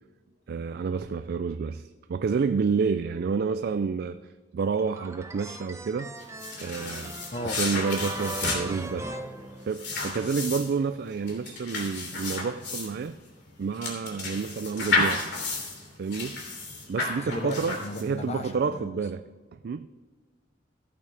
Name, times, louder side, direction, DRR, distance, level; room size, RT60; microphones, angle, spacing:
voice 1, 0.5-6.1 6.6-7.2 7.6-9.1 9.6-13.2 13.6-15.3 16.0-16.4 16.9-19.2 19.5-19.9, right 5 dB, 55° right, 11 dB, 0.3 m, -29 dB
sound 1, 4.8-10.2, right 3 dB, 15° right, 0.7 m, -39 dB
sound 2, 6.2-18.3, left 3 dB, 65° left, 2.9 m, -32 dB
voice 2, 17.2-19.0, left 1 dB, 35° left, 7 dB, 0.8 m, -35 dB
15.0 x 8.5 x 3.4 m, 1.5 s
head